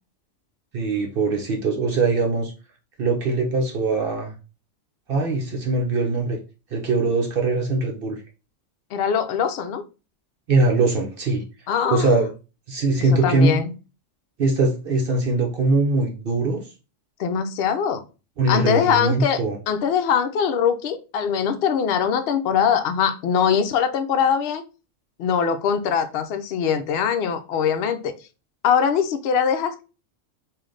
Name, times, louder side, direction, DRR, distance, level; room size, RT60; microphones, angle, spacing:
voice 1, 0.7-2.5 3.0-4.3 5.1-6.4 6.7-8.2 10.5-11.4 11.9-12.3 12.7-13.6 14.4-16.6 18.4-19.6, right 3 dB, 55° right, 0.8 m, -21 dB
voice 2, 8.9-9.8 11.7-12.1 13.2-13.7 17.2-18.0 18.5-24.6 25.2-28.1 28.6-29.8, left 7 dB, 65° left, 0.7 m, -22 dB
3.2 x 2.5 x 3.8 m
omnidirectional pair, 1.3 m